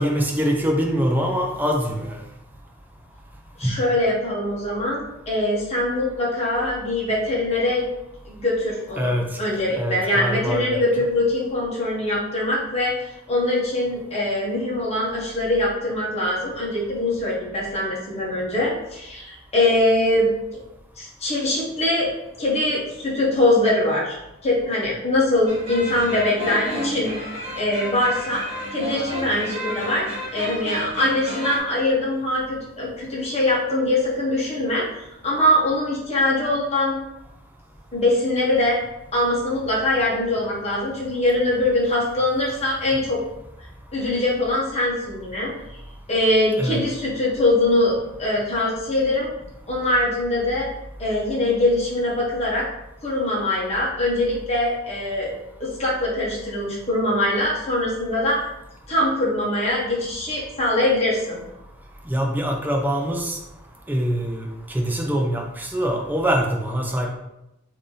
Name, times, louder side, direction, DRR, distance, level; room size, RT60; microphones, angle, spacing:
voice 1, 0.0-2.2 3.6-3.7 9.0-9.3 9.8-11.1 46.6-46.8 62.1-63.4 63.9-67.1, equal, 10° right, 0 dB, 0.5 m, -24 dB
voice 2, 3.6-7.8 8.2-9.1 9.4-20.3 21.0-22.1 22.4-27.1 27.6-28.4 28.7-36.9 37.9-38.8 39.1-43.2 43.9-45.8 46.1-49.3 49.7-50.7 51.0-52.6 53.0-55.3 55.6-58.4 58.9-61.4, left 1 dB, 30° left, -6 dB, 1.0 m, -22 dB
sound 1, 25.5-31.6, equal, 30° right, 1.2 m, -31 dB
3.2 x 2.7 x 3.8 m, 0.88 s
head